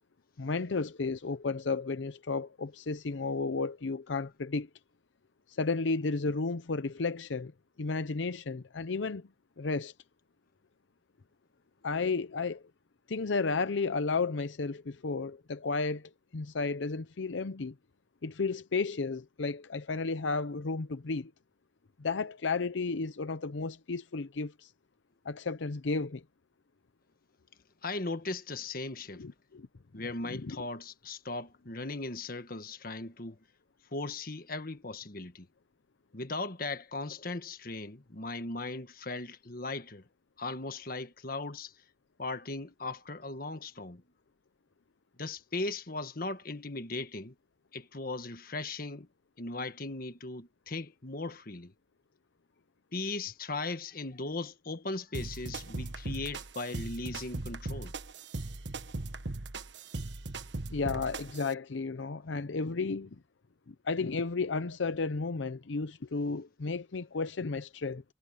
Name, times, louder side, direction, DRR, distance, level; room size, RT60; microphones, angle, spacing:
voice 1, 0.4-4.7 5.5-7.5 7.8-9.3 9.6-9.9 11.8-12.6 13.1-17.7 18.2-21.3 22.0-24.7 25.2-26.2 29.2-29.7 30.2-30.6 60.7-63.2 63.7-68.0, left 4 dB, 85° left, 0.7 m, -33 dB
voice 2, 27.8-29.2 29.9-33.4 33.9-35.5 36.1-40.0 40.4-41.7 42.2-44.0 45.2-47.3 47.7-49.1 49.4-51.7 52.9-57.9, left 3 dB, 50° left, 1.5 m, -38 dB
sound 1, 55.1-61.5, right 2 dB, 70° right, 1.3 m, -39 dB
head